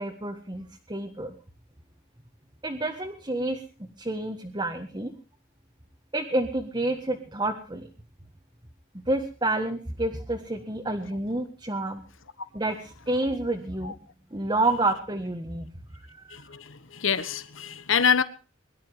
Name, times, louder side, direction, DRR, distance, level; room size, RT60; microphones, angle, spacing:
voice 1, 0.0-1.3 2.6-5.1 6.1-7.9 8.9-12.0 12.5-13.9 14.3-15.7 16.3-16.4, right 2 dB, 20° right, 4 dB, 1.7 m, -29 dB
voice 2, 16.3-18.2, left 7 dB, 75° left, 14 dB, 1.4 m, -26 dB
23.0 x 12.0 x 4.9 m, 0.36 s
head